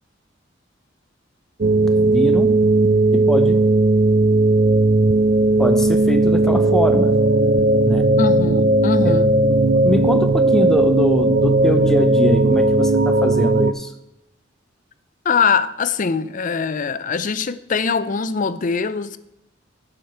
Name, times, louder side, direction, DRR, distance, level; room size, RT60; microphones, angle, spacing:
sound 1, 1.6-13.7, right 2 dB, 45° right, 0.5 m, -16 dB
voice 1, 2.0-2.6 3.1-3.7 5.6-7.2 7.9-8.1 9.0-9.2 9.7-13.9, left 1 dB, ahead, 0.8 m, -22 dB
voice 2, 8.2-9.3 15.2-19.2, left 5 dB, 40° left, 0.5 m, -22 dB
11.5 x 5.0 x 7.9 m
head